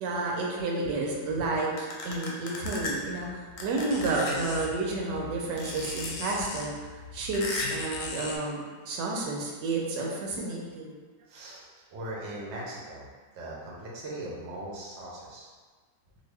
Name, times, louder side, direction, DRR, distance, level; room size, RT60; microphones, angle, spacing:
voice 1, 0.0-6.7 7.1-11.0, right 2 dB, 85° right, -2 dB, 1.2 m, -31 dB
sound 1, 1.8-2.9 3.6-4.5 5.6-6.1 7.3-7.9, left 3 dB, 70° left, 1.0 m, -35 dB
sound 2, 2.7-8.4, left 4 dB, 90° left, 1.2 m, -41 dB
voice 2, 11.3-13.1 13.3-15.5, right 1 dB, 55° right, -5 dB, 0.8 m, -39 dB
2.7 x 2.5 x 3.2 m, 1.5 s
omnidirectional pair, 1.8 m